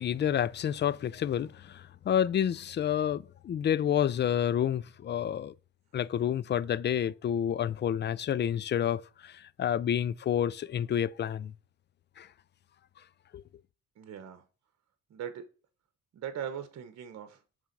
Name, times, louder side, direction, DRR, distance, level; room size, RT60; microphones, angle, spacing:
voice 1, 0.0-5.5 5.9-11.5 12.2-12.3 13.3-13.4, left 9 dB, 35° left, 0.4 m, -29 dB
voice 2, 14.0-14.4 15.1-15.4 16.1-17.4, right 8 dB, 60° right, 1.1 m, -40 dB
7.2 x 3.6 x 5.3 m
cardioid pair, 90°, 30 cm